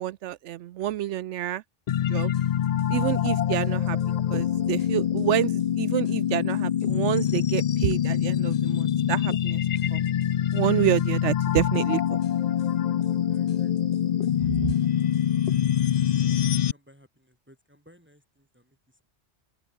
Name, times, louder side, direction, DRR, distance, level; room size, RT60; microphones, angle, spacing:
voice 1, 0.0-1.6 2.1-2.3 2.9-4.0 4.3-9.6 9.9-10.0 10.5-12.2 14.6-14.7, right 13 dB, 80° right, 0.9 m, -28 dB
sound 1, 1.9-16.7, left 10 dB, 60° left, 0.4 m, -25 dB
voice 2, 13.3-13.8 14.1-14.6 15.1-15.4 15.7-15.8 16.3-19.1, equal, 10° right, 4.7 m, -58 dB
open air
omnidirectional pair, 1.2 m